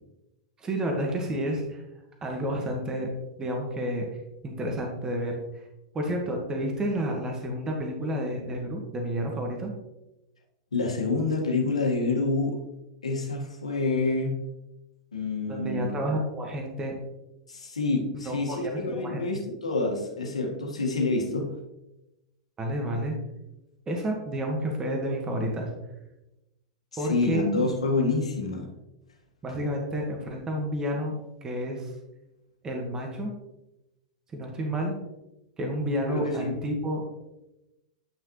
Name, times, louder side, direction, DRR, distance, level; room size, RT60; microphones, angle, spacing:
voice 1, 0.6-1.8 2.2-3.1 3.4-4.1 4.4-5.4 5.9-9.7 15.5-16.9 18.1-19.2 22.6-23.1 23.9-25.7 27.0-27.4 29.4-31.1 31.4-31.9 32.6-33.3 34.3-34.9 35.6-37.1, equal, 20° right, 1 dB, 1.6 m, -30 dB
voice 2, 10.7-12.6 13.0-14.4 15.1-15.9 17.5-21.5 26.9-28.7 36.1-36.6, left 3 dB, 85° left, 0 dB, 1.7 m, -27 dB
9.9 x 5.8 x 3.2 m, 0.95 s
hypercardioid pair, 100°, 3 cm